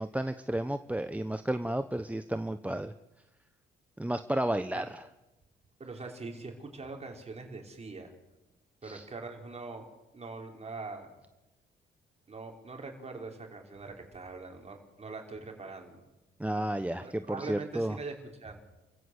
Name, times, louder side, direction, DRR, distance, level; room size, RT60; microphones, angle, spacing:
voice 1, 0.0-2.9 4.0-5.0 8.8-9.1 16.4-18.0, right 1 dB, 5° right, 9 dB, 0.9 m, -32 dB
voice 2, 5.8-8.1 8.8-9.9 10.1-11.2 12.3-16.0 17.0-18.1 18.4-18.6, right 3 dB, 30° right, 2 dB, 5.5 m, -42 dB
28.5 x 15.5 x 8.1 m, 1.0 s
cardioid pair, 90°, 20 cm